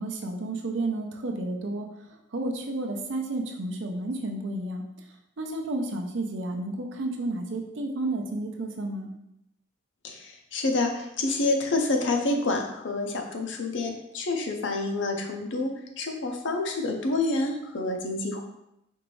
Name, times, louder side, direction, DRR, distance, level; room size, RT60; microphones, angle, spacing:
voice 1, 0.0-1.9 2.3-4.8 5.4-9.1, right 2 dB, 65° right, 2 dB, 0.5 m, -31 dB
voice 2, 10.0-15.7 16.0-18.4, left 2 dB, 65° left, 3 dB, 0.6 m, -28 dB
4.4 x 2.6 x 3.1 m, 0.84 s
head